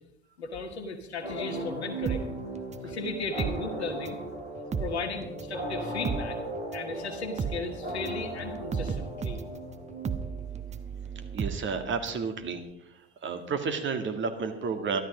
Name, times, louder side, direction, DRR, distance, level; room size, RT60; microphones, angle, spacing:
voice 1, 0.4-2.3 2.8-4.2 4.8-6.4 6.7-9.4, left 3 dB, 85° left, 7 dB, 1.5 m, -36 dB
sound 1, 1.2-10.7, right 1 dB, 85° right, 3.5 m, -37 dB
sound 2, 2.1-4.3 4.6-12.3 12.6-12.7, right 6 dB, 20° right, 0.9 m, -34 dB
voice 2, 11.3-12.6 13.2-15.0, right 5 dB, 35° right, 6 dB, 2.0 m, -31 dB
12.5 x 12.0 x 5.1 m, 0.82 s
figure-of-eight pair, 65°, 32 cm